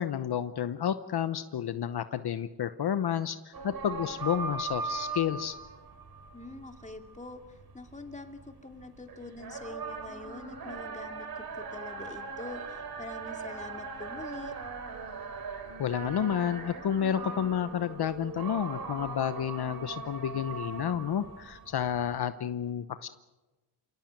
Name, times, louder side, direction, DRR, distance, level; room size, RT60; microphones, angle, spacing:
voice 1, 0.0-5.5 15.8-23.1, left 9 dB, 65° left, 12 dB, 0.9 m, -30 dB
sound 1, 3.5-22.2, right 4 dB, 60° right, 3.8 m, -40 dB
voice 2, 6.3-14.6, left 2 dB, 15° left, 5 dB, 2.7 m, -45 dB
28.0 x 18.0 x 9.1 m, 1.1 s
cardioid pair, 95°, 41 cm